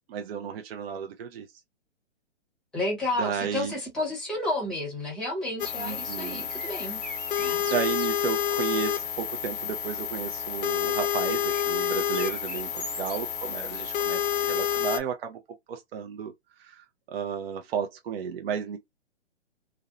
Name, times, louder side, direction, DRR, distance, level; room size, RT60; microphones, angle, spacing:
voice 1, 0.0-1.5 3.2-3.8 5.8-6.5 7.7-15.4 15.7-18.8, right 7 dB, 55° right, 0.5 m, -33 dB
voice 2, 2.7-7.0 7.4-7.7 13.6-13.8, left 2 dB, ahead, 0.7 m, -31 dB
sound 1, 5.6-15.0, left 9 dB, 45° left, 0.5 m, -29 dB
sound 2, 6.4-8.1 11.0-13.2, right 4 dB, 90° right, 1.0 m, -42 dB
2.5 x 2.0 x 2.5 m
hypercardioid pair, 150°, 36 cm